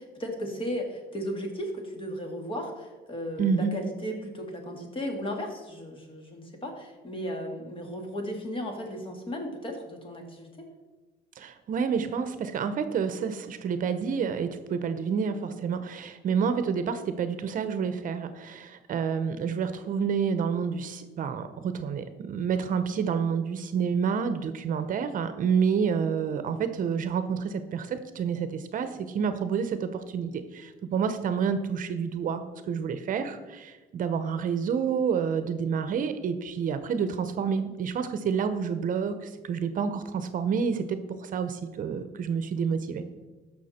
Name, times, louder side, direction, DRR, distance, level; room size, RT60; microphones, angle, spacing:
voice 1, 0.0-10.5, equal, 30° left, 2 dB, 2.3 m, -35 dB
voice 2, 3.4-3.7 11.4-43.0, right 6 dB, 50° right, 10 dB, 0.8 m, -29 dB
14.5 x 6.0 x 4.3 m, 1.2 s
cardioid pair, 110°, 17 cm